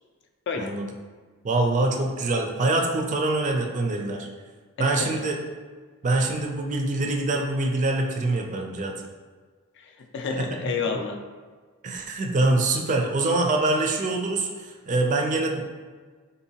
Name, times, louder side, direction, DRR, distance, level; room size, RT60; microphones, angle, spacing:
voice 1, 1.4-4.3 4.8-5.4 6.0-8.9 10.3-10.5 11.8-15.6, right 2 dB, 35° right, 2 dB, 0.4 m, -24 dB
voice 2, 4.8-5.3 9.8-11.2, left 5 dB, 55° left, 4 dB, 0.4 m, -30 dB
3.8 x 2.7 x 2.8 m, 1.5 s
head